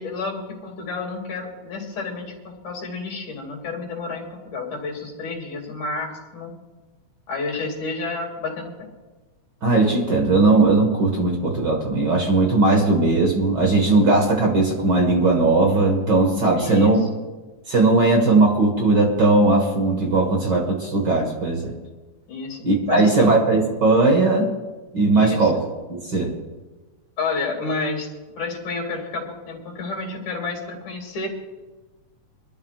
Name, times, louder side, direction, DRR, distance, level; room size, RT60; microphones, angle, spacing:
voice 1, 0.0-6.5 7.3-8.9 16.5-17.3 22.3-23.4 25.1-25.5 27.2-28.1 28.4-31.3, left 3 dB, 85° left, 0 dB, 3.9 m, -30 dB
voice 2, 9.6-17.0 17.7-21.7 22.6-24.5 24.9-25.6 25.9-26.3, right 3 dB, 40° right, 1 dB, 1.9 m, -18 dB
25.0 x 12.5 x 2.4 m, 1.2 s
omnidirectional pair, 3.4 m